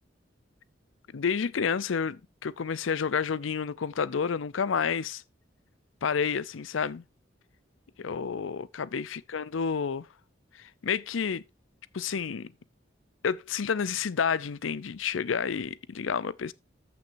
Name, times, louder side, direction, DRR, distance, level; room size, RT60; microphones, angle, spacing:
voice 1, 1.1-5.2 6.0-7.0 8.0-10.1 10.6-11.4 11.9-12.5 13.2-16.5, left 6 dB, 85° left, 0.5 m, -30 dB
13.5 x 6.0 x 2.6 m
head